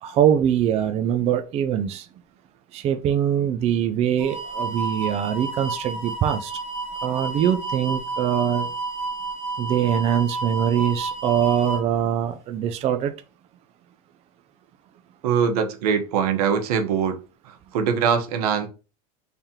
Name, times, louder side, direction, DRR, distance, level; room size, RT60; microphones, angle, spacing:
voice 1, 0.0-2.1 2.7-6.5 7.0-8.7 9.6-13.1, right 9 dB, 35° right, 0.4 m, -23 dB
sound 1, 4.2-11.8, right 3 dB, 15° left, 1.8 m, -30 dB
voice 2, 15.2-17.2 17.4-18.7, right 7 dB, 85° right, 1.0 m, -22 dB
3.5 x 3.3 x 2.8 m
supercardioid pair, 125°, 19 cm